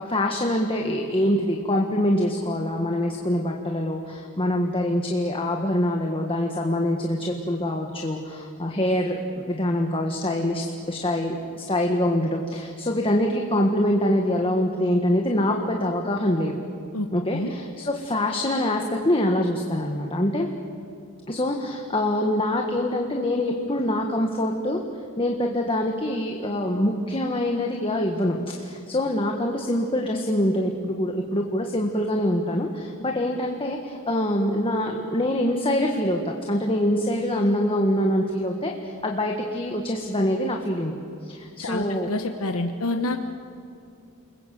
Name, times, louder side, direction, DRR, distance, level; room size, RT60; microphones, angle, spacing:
voice 1, 0.0-16.5 17.1-20.5 21.3-24.8 25.2-40.9 41.2-42.1, left 1 dB, 25° left, 2 dB, 1.7 m, -25 dB
voice 2, 41.6-43.2, left 2 dB, 75° left, 5 dB, 1.2 m, -27 dB
29.5 x 21.0 x 7.8 m, 2.6 s
head